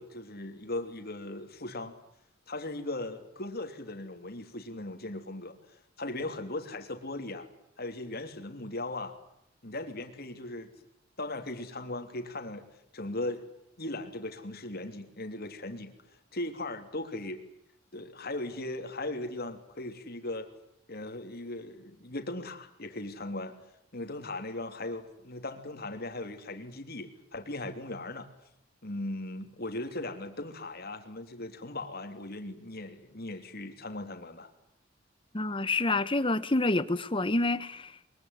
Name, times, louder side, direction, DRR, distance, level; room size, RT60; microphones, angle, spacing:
voice 1, 0.0-1.9 2.5-7.5 7.8-9.2 9.6-10.7 11.2-12.7 12.9-13.5 13.8-15.9 16.3-17.4 17.9-20.5 20.9-23.5 23.9-28.3 28.8-34.5, left 2 dB, 50° left, 3.2 m, -38 dB
voice 2, 35.3-38.1, left 2 dB, 25° left, 1.2 m, -28 dB
23.5 x 22.0 x 9.7 m
head